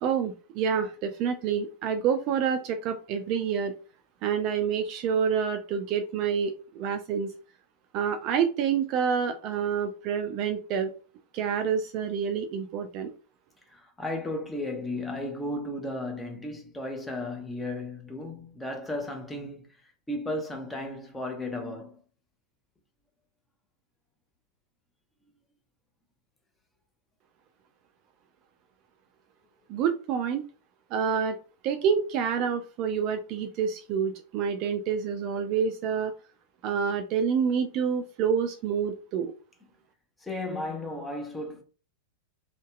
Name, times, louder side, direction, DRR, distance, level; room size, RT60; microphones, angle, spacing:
voice 1, 0.0-3.7 4.2-7.3 7.9-10.9 11.3-13.1 29.7-30.5 30.9-31.4 31.6-36.1 36.6-39.3, right 7 dB, 40° right, 0.3 m, -28 dB
voice 2, 13.7-19.7 20.1-22.0 40.2-41.6, left 1 dB, 10° left, 0.6 m, -34 dB
2.6 x 2.1 x 2.3 m
figure-of-eight pair, 90°, 0 cm